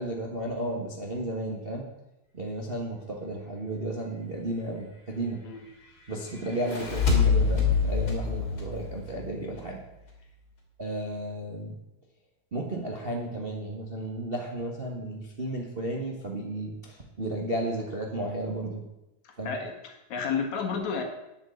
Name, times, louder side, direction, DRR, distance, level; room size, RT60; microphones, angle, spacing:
voice 1, 0.0-1.8 2.3-5.4 6.1-9.8 10.8-11.7 12.5-18.8 19.4-19.6, right 1 dB, 55° right, -1 dB, 0.6 m, -33 dB
sound 1, 6.5-9.8, left 5 dB, 30° left, 3.0 m, -26 dB
voice 2, 19.4-21.0, left 6 dB, 65° left, 3 dB, 3.0 m, -31 dB
9.5 x 8.2 x 7.7 m, 0.94 s
omnidirectional pair, 3.6 m